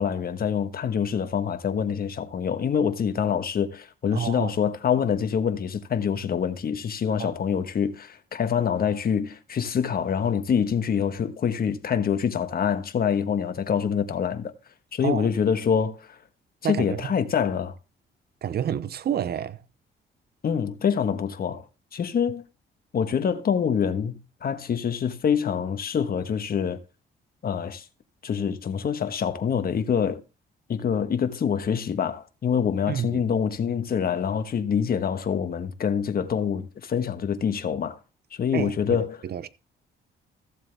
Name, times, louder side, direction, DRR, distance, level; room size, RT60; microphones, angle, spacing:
voice 1, 0.0-14.5 14.9-16.2 16.7-17.7 20.4-21.6 21.9-22.4 22.9-26.8 27.4-27.9 28.2-30.2 30.7-38.0 38.3-39.2, left 7 dB, 50° left, 1.4 m, -25 dB
voice 2, 4.1-4.5 7.2-7.3 15.0-15.3 16.6-17.0 18.4-19.6 32.9-33.2 38.5-39.5, right 9 dB, 55° right, 0.8 m, -29 dB
14.5 x 7.4 x 3.4 m
cardioid pair, 90°, 20 cm